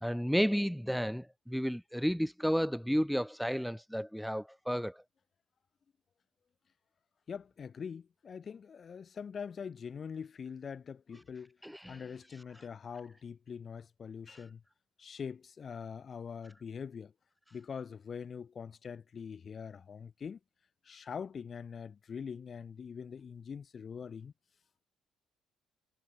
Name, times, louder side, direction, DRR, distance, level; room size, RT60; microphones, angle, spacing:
voice 1, 0.0-5.0 11.6-12.0 14.3-14.4, equal, ahead, 0.4 m, -32 dB
voice 2, 7.3-11.6 11.9-14.6 15.0-17.1 17.5-20.4 20.8-24.3, left 6 dB, 45° left, 1.5 m, -43 dB
supercardioid pair, 70°, 0 cm